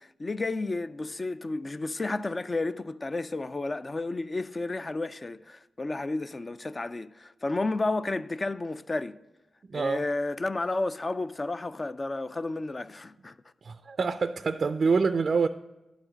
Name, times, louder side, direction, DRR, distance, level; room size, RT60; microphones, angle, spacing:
voice 1, 0.0-9.2 9.7-13.4, left 2 dB, 35° left, 0.4 m, -32 dB
voice 2, 9.7-10.0 13.6-15.5, right 4 dB, 55° right, 0.3 m, -26 dB
11.0 x 4.9 x 6.3 m
cardioid pair, 70°, 0 cm